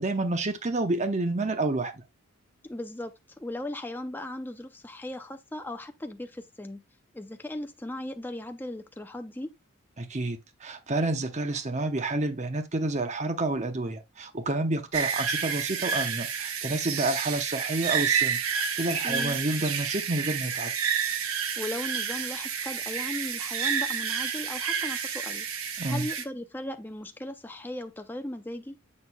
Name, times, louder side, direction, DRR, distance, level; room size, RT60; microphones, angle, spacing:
voice 1, 0.0-1.9 10.0-20.7 25.8-26.1, right 2 dB, 30° right, 0.7 m, -29 dB
voice 2, 2.6-6.8 7.1-9.5 19.0-19.4 21.6-25.5 25.8-28.8, left 1 dB, 10° left, 0.5 m, -37 dB
sound 1, 14.9-26.2, right 7 dB, 75° right, 0.9 m, -30 dB
7.3 x 6.2 x 2.2 m
head